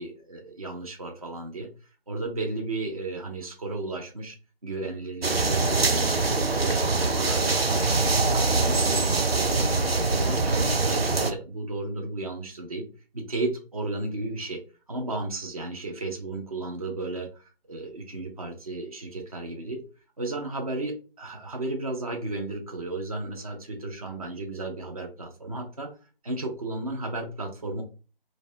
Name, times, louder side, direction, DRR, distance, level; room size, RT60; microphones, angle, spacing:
voice 1, 0.0-1.7 2.1-4.4 4.6-6.1 6.4-12.9 13.1-14.6 14.9-19.8 20.2-25.9 26.2-27.8, right 2 dB, 40° right, 2 dB, 0.5 m, -34 dB
sound 1, 5.2-11.3, right 3 dB, 90° right, 0.6 m, -23 dB
3.1 x 2.1 x 2.6 m, 0.35 s
figure-of-eight pair, 155°, 29 cm